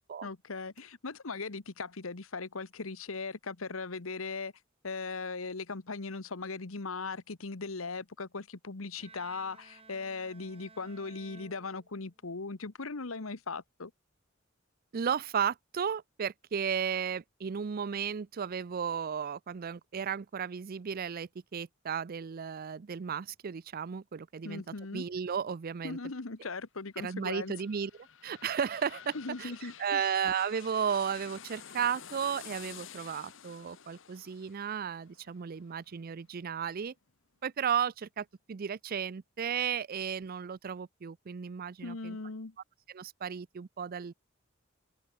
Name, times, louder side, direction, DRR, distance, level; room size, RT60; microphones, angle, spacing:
voice 1, 0.2-4.5 4.8-13.9 24.4-25.1 25.8-27.5 29.1-30.0 41.8-42.5, left 4 dB, 85° left, 1.2 m, -39 dB
Bowed string instrument, 9.0-12.3, right 4 dB, 30° right, 2.0 m, -56 dB
voice 2, 14.9-24.6 24.9-26.0 27.0-27.9 28.2-36.9 37.4-42.2 42.9-44.1, right 7 dB, 45° right, 0.4 m, -34 dB
sound 1, 27.1-36.7 37.1-37.2, left 8 dB, 65° left, 1.3 m, -51 dB
open air
head